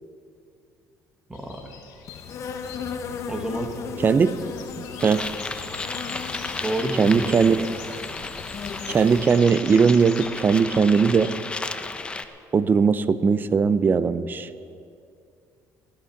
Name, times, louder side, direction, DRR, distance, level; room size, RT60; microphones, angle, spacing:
sound 1, 1.3-11.4, left 7 dB, 85° left, 2.2 m, -45 dB
voice 1, 1.3-1.7 3.3-3.7 6.6-7.5, right 1 dB, 10° right, 3 dB, 1.5 m, -29 dB
Insect, 2.1-9.3, left 6 dB, 50° left, 0.9 m, -36 dB
voice 2, 4.0-4.3 4.8-5.2 7.0-7.7 8.9-11.3 12.5-14.5, right 5 dB, 30° right, 14 dB, 0.6 m, -19 dB
sound 2, 5.0-12.2, left 3 dB, 15° left, 0.7 m, -34 dB
15.5 x 11.5 x 5.8 m, 2.4 s
cardioid pair, 120°, 6 cm